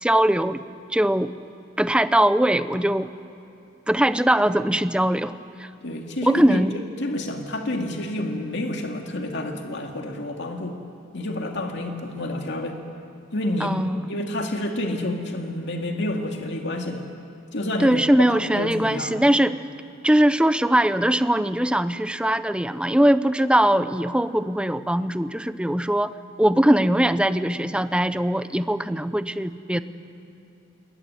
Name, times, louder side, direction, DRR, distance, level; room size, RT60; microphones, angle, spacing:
voice 1, 0.0-0.6 0.9-1.3 1.8-3.1 3.9-5.7 6.3-6.7 13.6-14.1 17.8-19.6 20.0-26.1 26.4-29.8, right 1 dB, 5° right, 12 dB, 0.7 m, -21 dB
voice 2, 5.8-6.6 7.0-10.8 11.1-12.8 13.3-13.8 14.1-17.1 17.5-19.3 29.7-29.8, left 1 dB, 60° left, 3 dB, 2.4 m, -29 dB
27.5 x 22.0 x 9.8 m, 2.7 s
head